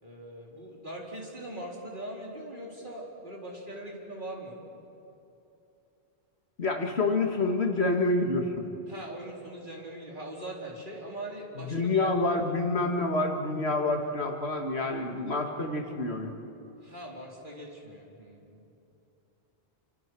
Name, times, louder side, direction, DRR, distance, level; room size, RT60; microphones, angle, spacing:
voice 1, 0.0-4.6 8.9-12.1 16.8-18.6, right 1 dB, 50° right, -2 dB, 4.1 m, -41 dB
voice 2, 6.6-8.6 11.6-16.3, left 2 dB, 85° left, 3 dB, 2.3 m, -28 dB
29.5 x 25.5 x 6.2 m, 2.8 s
omnidirectional pair, 1.1 m